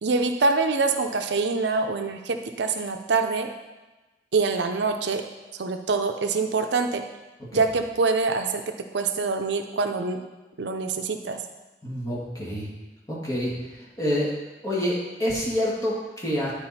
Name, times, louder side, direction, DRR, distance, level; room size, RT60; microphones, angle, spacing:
voice 1, 0.0-3.5 4.3-5.2 5.5-7.0 7.5-8.6 8.9-10.2 10.6-11.4, right 4 dB, 80° right, 6 dB, 0.6 m, -25 dB
voice 2, 11.8-12.7 13.1-13.5 14.0-14.3 14.6-16.5, equal, 20° left, -5 dB, 1.8 m, -27 dB
9.7 x 4.8 x 4.2 m, 1.1 s
head